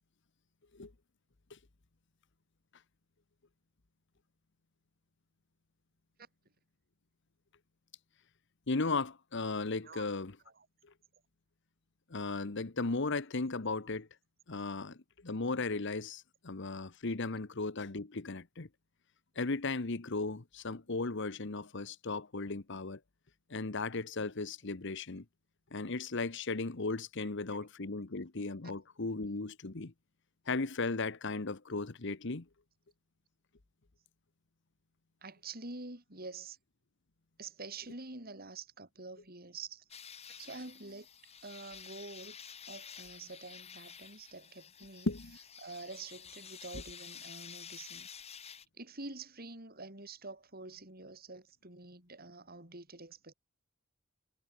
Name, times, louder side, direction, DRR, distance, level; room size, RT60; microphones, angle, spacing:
voice 1, 8.7-10.3 12.1-14.1 14.5-18.7 19.3-23.0 23.5-25.2 25.7-29.9 30.5-32.4 45.1-45.4, left 3 dB, 60° left, 1.2 m, -36 dB
voice 2, 35.2-36.6 37.4-39.8 40.4-42.4 42.7-45.1 45.6-48.1 48.4-53.3, right 3 dB, 45° right, 6.8 m, -47 dB
sound 1, 39.9-48.7, left 7 dB, 30° left, 3.2 m, -50 dB
head